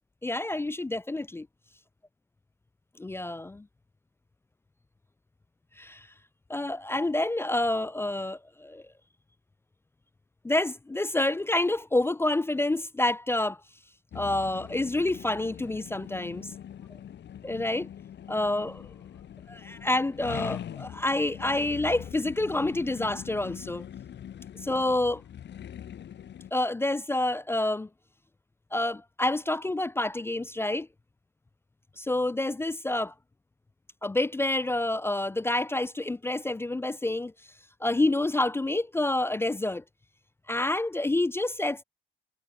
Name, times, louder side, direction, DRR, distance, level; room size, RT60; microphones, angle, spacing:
voice 1, 0.2-1.5 3.0-3.7 5.8-6.1 6.5-8.8 10.4-13.6 14.1-16.5 17.4-17.9 18.3-18.8 19.5-23.8 24.6-25.2 26.5-27.9 28.7-30.9 32.0-33.1 34.0-37.3 37.8-39.8 40.5-41.8, left 2 dB, 10° left, 0.3 m, -28 dB
sound 1, 14.1-26.5, left 10 dB, 60° left, 2.7 m, -42 dB
cardioid pair, 90°, 20 cm